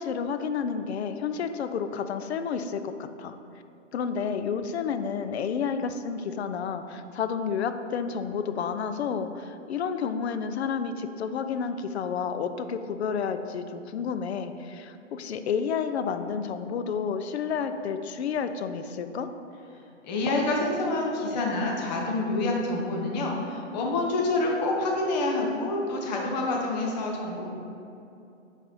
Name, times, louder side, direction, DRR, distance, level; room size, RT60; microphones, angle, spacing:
voice 1, 0.0-2.9 3.2-3.4 3.9-19.3, left 6 dB, 55° left, 9 dB, 0.5 m, -30 dB
voice 2, 20.0-27.5, left 2 dB, 35° left, 0 dB, 0.9 m, -27 dB
5.6 x 4.1 x 4.2 m, 2.7 s
hypercardioid pair, 140°, 38 cm